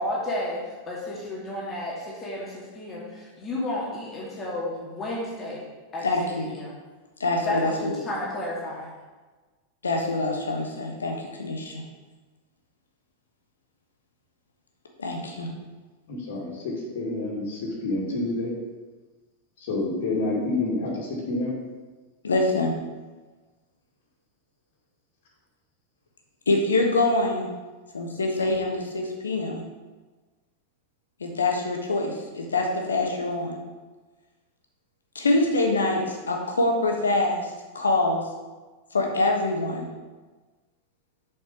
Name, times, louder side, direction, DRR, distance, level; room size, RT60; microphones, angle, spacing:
voice 1, 0.0-5.7 5.9-6.1 6.5-6.8 7.4-8.9, left 1 dB, 20° left, -5 dB, 2.1 m, -32 dB
voice 2, 6.0-6.5 7.2-7.9 9.8-11.8 15.0-15.5 22.2-22.8 26.5-27.5 27.9-29.6 31.2-33.6 35.1-38.2 38.9-39.9, left 2 dB, 70° left, 1 dB, 1.3 m, -25 dB
voice 3, 16.1-18.5 19.6-21.6, left 2 dB, 55° left, -4 dB, 2.2 m, -28 dB
7.3 x 5.3 x 5.2 m, 1.3 s
figure-of-eight pair, 90°, 0 cm